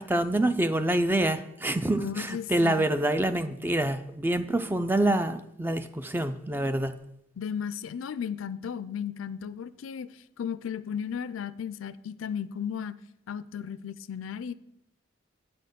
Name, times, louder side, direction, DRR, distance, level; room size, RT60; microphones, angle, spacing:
voice 1, 0.0-7.0, right 1 dB, 10° right, 10 dB, 0.3 m, -26 dB
voice 2, 2.0-2.9 7.4-10.1 10.4-12.9 13.3-14.5, left 7 dB, 85° left, 16 dB, 0.4 m, -35 dB
8.6 x 4.3 x 6.6 m, 0.80 s
head